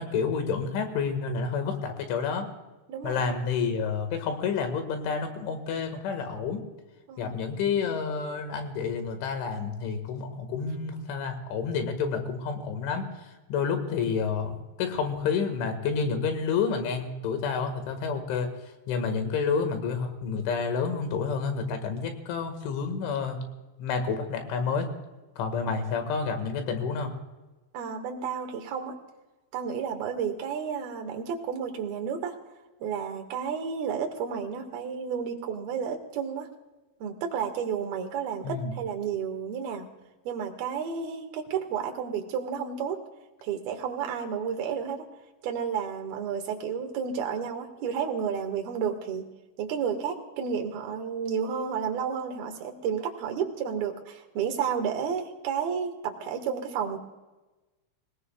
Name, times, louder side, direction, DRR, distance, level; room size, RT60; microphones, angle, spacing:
voice 1, 0.0-2.5 3.0-6.6 7.2-13.1 13.5-18.5 18.9-23.4 23.8-24.9 25.4-27.1 38.4-38.7, left 5 dB, 80° left, 7 dB, 4.3 m, -29 dB
voice 2, 2.9-3.3 7.1-7.4 25.7-25.8 27.7-28.9 29.5-32.3 32.8-36.5 37.0-39.9 40.2-43.0 43.4-45.0 45.4-49.3 49.6-57.0, right 7 dB, 60° right, 4 dB, 3.2 m, -31 dB
26.0 x 18.0 x 2.4 m, 1.1 s
omnidirectional pair, 5.4 m